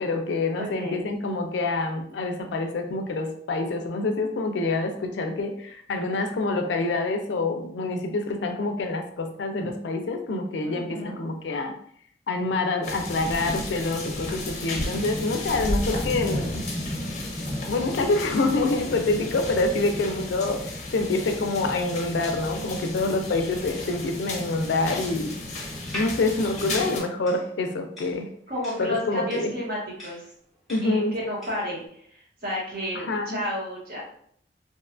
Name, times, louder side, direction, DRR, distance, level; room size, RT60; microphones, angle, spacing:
voice 1, 0.0-11.7 12.3-16.6 17.7-25.4 25.9-28.3 28.8-29.5 30.7-31.1 32.9-33.4, left 3 dB, 90° left, 5 dB, 0.4 m, -26 dB
voice 2, 0.6-1.1 10.6-11.2 28.5-30.2 30.8-32.0 32.4-34.0, left 1 dB, 55° right, -4 dB, 1.0 m, -31 dB
sound 1, 12.8-27.0, left 1 dB, 40° left, 0.5 m, -33 dB
sound 2, 25.8-31.7, left 1 dB, ahead, 0.9 m, -41 dB
2.7 x 2.2 x 2.4 m, 0.64 s
head